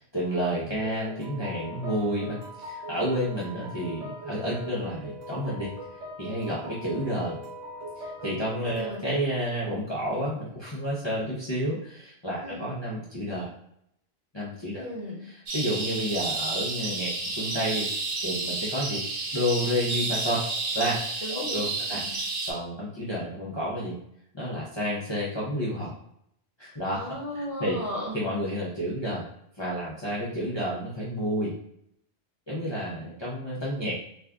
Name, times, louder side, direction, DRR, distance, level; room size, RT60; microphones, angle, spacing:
voice 1, 0.0-5.7 6.2-7.4 8.0-13.5 14.3-14.9 15.2-17.9 18.2-20.4 20.7-21.0 21.3-24.0 24.3-25.9 26.6-27.0 27.3-27.8 28.1-29.2 29.6-31.6 32.5-33.9, equal, 30° left, -7 dB, 0.6 m, -30 dB
sound 1, 0.8-8.9, right 1 dB, 85° right, 1.1 m, -40 dB
voice 2, 8.7-9.0 12.4-12.6 14.7-15.2 21.2-22.1 26.9-28.1, equal, 30° right, -7 dB, 1.2 m, -35 dB
sound 2, 15.5-22.5, right 3 dB, 65° right, 1.0 m, -31 dB
2.6 x 2.4 x 3.4 m, 0.73 s
omnidirectional pair, 1.2 m